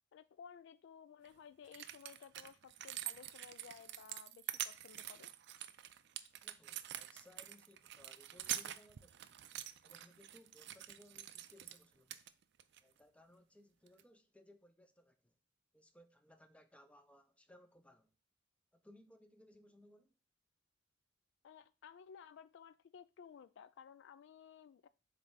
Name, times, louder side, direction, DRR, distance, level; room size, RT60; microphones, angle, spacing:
voice 1, 0.1-5.3 21.4-24.9, left 7 dB, 60° left, 0.3 m, -57 dB
sound 1, 1.2-1.3 1.7-11.8 12.1-12.8 13.9-14.0, right 12 dB, 60° right, 0.4 m, -46 dB
voice 2, 6.4-9.4 9.8-12.2 12.8-15.4 15.7-18.1 18.7-20.2, left 1 dB, 5° left, 0.6 m, -64 dB
7.7 x 3.2 x 4.0 m
head